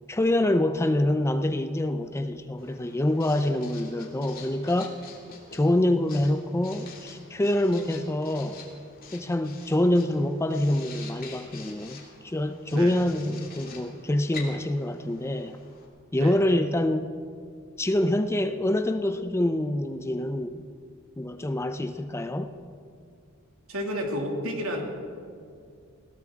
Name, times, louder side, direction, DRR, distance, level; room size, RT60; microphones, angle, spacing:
voice 1, 0.1-5.0 5.5-8.6 9.1-15.5 16.1-17.1 17.8-20.6 21.2-22.6, left 1 dB, 10° left, 9 dB, 0.4 m, -26 dB
Writing, 2.6-15.9, left 4 dB, 45° left, 2.5 m, -47 dB
voice 2, 23.7-24.9, equal, 75° right, 1 dB, 2.4 m, -31 dB
20.5 x 17.0 x 3.6 m, 2.3 s
head